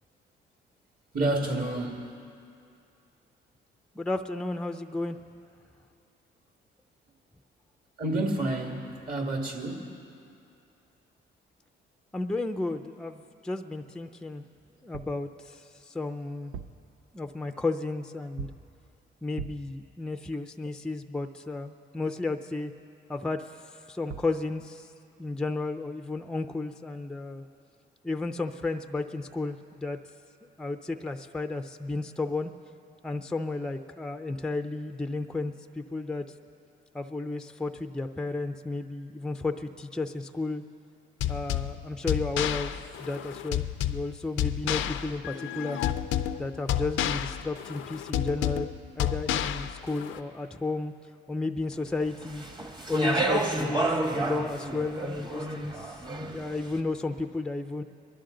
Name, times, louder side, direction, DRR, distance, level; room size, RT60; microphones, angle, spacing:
voice 1, 1.1-2.1 8.0-9.9, right 2 dB, 45° right, 2 dB, 2.0 m, -29 dB
voice 2, 4.0-5.2 12.1-14.4 14.8-16.5 17.1-18.5 19.2-22.7 23.1-24.9 25.2-27.4 28.0-30.0 30.6-32.5 33.0-36.3 36.9-40.6 41.3-45.8 46.4-48.7 48.9-50.9 51.3-52.4 52.9-57.8, left 3 dB, 5° left, 6 dB, 0.5 m, -33 dB
sound 1, 14.9-15.3 16.4-16.9 18.4-18.7 19.4-19.8 23.8-23.9 24.1-24.4, right 7 dB, 90° right, 0.5 m, -41 dB
sound 2, 41.2-50.2, left 11 dB, 80° left, 0.5 m, -30 dB
Speech, 52.2-56.6, right 2 dB, 20° right, 1.2 m, -30 dB
22.0 x 11.5 x 3.8 m, 2.5 s
cardioid pair, 90°, 20 cm